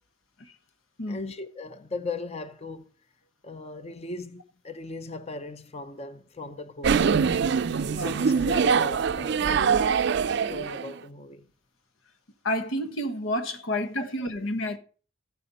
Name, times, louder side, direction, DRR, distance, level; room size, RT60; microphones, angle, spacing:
voice 1, 1.1-2.8 3.4-7.1 8.0-9.8 10.3-11.5 14.0-14.3, left 3 dB, 35° left, 0.7 m, -38 dB
sound 1, 6.8-11.0, right 6 dB, 60° right, 0.4 m, -23 dB
voice 2, 12.4-14.8, left 1 dB, 85° left, 1.3 m, -30 dB
14.0 x 9.4 x 4.1 m
head